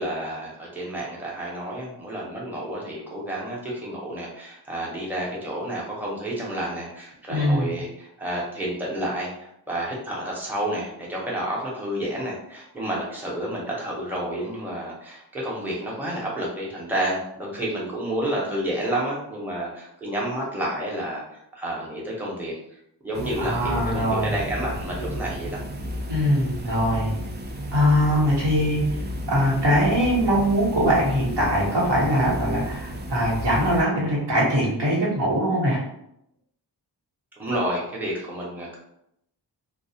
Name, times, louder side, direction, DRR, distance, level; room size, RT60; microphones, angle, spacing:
voice 1, 0.0-22.5 23.0-25.6 37.4-38.7, right 1 dB, 5° right, -4 dB, 0.7 m, -30 dB
voice 2, 7.3-7.8 23.4-24.3 26.1-27.1 27.7-28.8 29.3-35.8, equal, 70° right, -5 dB, 1.0 m, -22 dB
sound 1, 23.1-33.8, equal, 25° right, 0.3 m, -33 dB
2.3 x 2.0 x 2.7 m, 0.77 s
cardioid pair, 50°, 42 cm